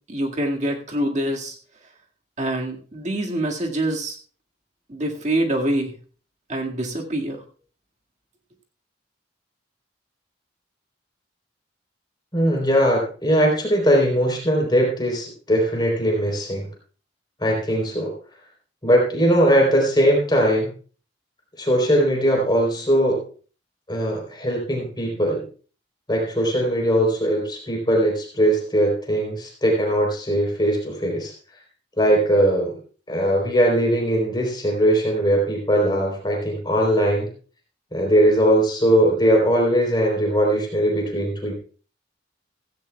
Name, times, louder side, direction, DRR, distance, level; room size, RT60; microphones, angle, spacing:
voice 1, 0.1-1.6 2.4-4.2 4.9-5.9 6.5-7.4, right 1 dB, 40° right, 1 dB, 2.0 m, -25 dB
voice 2, 12.3-16.7 17.4-18.1 18.8-20.7 21.6-23.2 23.9-25.4 26.1-31.3 32.0-32.8 33.1-37.3 37.9-41.5, equal, 25° left, 0 dB, 3.8 m, -20 dB
16.0 x 15.5 x 2.3 m, 0.39 s
head